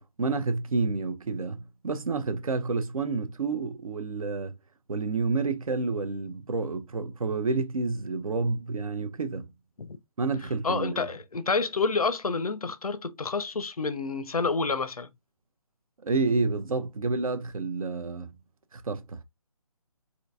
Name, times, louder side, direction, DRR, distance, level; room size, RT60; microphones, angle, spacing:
voice 1, 0.0-4.5 4.9-9.5 10.2-11.1 16.0-18.3 18.7-19.2, right 3 dB, 70° right, 0.6 m, -29 dB
voice 2, 10.6-15.1, left 4 dB, 85° left, 0.6 m, -28 dB
3.6 x 2.6 x 2.5 m
figure-of-eight pair, 150°, 18 cm